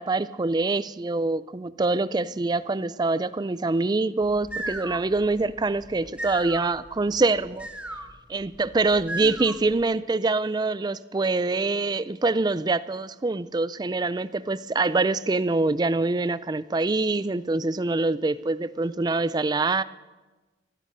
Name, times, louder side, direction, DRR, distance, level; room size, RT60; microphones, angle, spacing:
voice 1, 0.0-7.7 8.3-19.8, right 3 dB, 25° right, 16 dB, 0.4 m, -25 dB
sound 1, 4.2-9.8, right 1 dB, 5° right, 1.0 m, -37 dB
16.5 x 11.0 x 6.3 m, 1.2 s
head